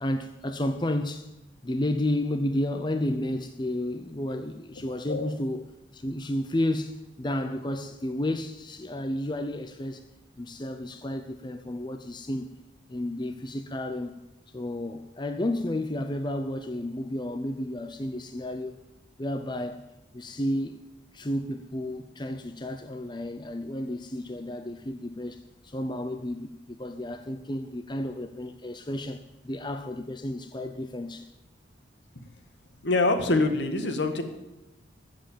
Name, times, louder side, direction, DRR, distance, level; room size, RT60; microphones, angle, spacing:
voice 1, 0.0-1.3 1.6-10.0 10.4-12.5 12.9-14.2 14.5-18.8 19.2-19.8 20.1-20.8 21.1-31.3, left 1 dB, 25° left, 0.6 m, -32 dB
voice 2, 32.8-34.2, left 2 dB, 65° left, 1.9 m, -24 dB
14.5 x 7.9 x 9.1 m
head